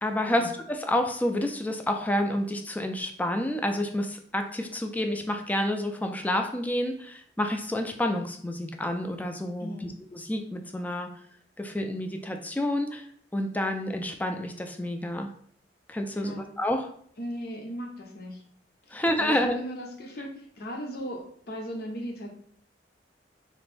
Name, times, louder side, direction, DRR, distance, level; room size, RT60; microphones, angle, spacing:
voice 1, 0.0-11.1 11.6-13.0 13.3-15.3 15.9-16.9 18.9-19.6, left 1 dB, 10° left, 5 dB, 0.3 m, -29 dB
voice 2, 9.6-9.9 16.1-16.5 17.2-18.4 19.2-22.3, equal, 60° left, 2 dB, 0.7 m, -37 dB
3.0 x 2.5 x 3.2 m, 0.62 s
head